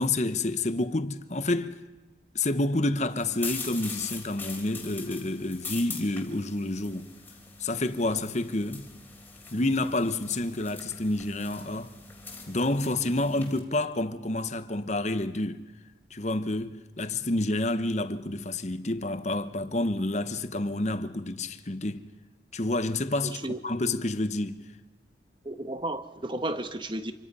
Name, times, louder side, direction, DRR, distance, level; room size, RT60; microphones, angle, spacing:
voice 1, 0.0-1.8 2.3-7.1 7.6-8.9 9.5-11.9 12.5-15.6 16.1-22.0 22.5-23.4 23.6-24.6, left 2 dB, 35° left, 1.0 m, -29 dB
sound 1, 3.2-13.6, left 4 dB, 10° left, 3.4 m, -42 dB
voice 2, 23.2-23.6 25.4-27.1, right 1 dB, 25° right, 1.2 m, -33 dB
27.0 x 24.5 x 5.5 m
head